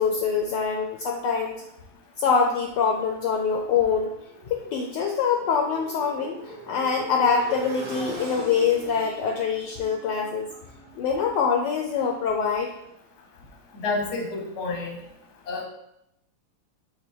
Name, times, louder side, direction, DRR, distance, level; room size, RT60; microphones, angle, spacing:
voice 1, 0.0-1.6 2.2-4.1 4.5-6.4 6.7-10.5 11.0-12.7, left 6 dB, 75° left, 1 dB, 1.0 m, -24 dB
Motorcycle, 2.4-12.3, right 1 dB, 50° right, 1.7 m, -41 dB
voice 2, 13.7-15.0 15.5-15.7, left 3 dB, 50° left, 0 dB, 0.8 m, -29 dB
5.3 x 2.2 x 4.3 m, 0.81 s
omnidirectional pair, 2.2 m